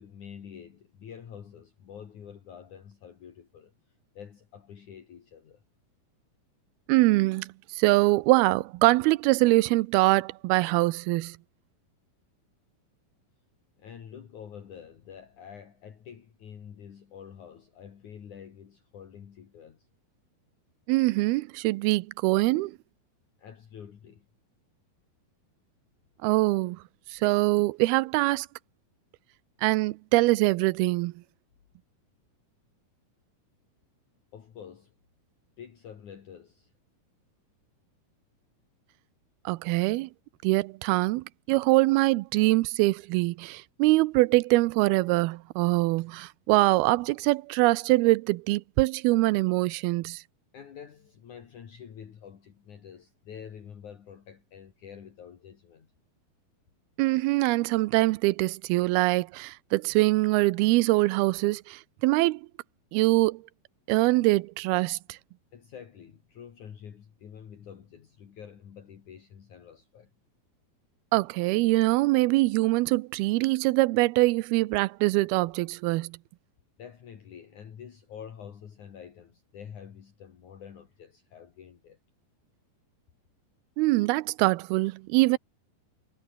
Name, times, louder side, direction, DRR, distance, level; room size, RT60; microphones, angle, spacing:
voice 1, 0.0-3.7 4.2-5.6 13.8-19.9 23.4-24.3 34.3-34.9 35.6-36.7 50.5-55.9 65.5-70.1 76.8-82.0, left 8 dB, 55° left, 3.6 m, -47 dB
voice 2, 6.9-11.4 20.9-22.8 26.2-26.8 27.1-28.5 29.6-31.1 39.5-40.1 40.4-50.2 57.0-62.5 62.9-63.4 63.9-65.2 71.1-76.2 83.8-85.4, right 21 dB, 90° right, 2.6 m, -23 dB
omnidirectional pair, 4.4 m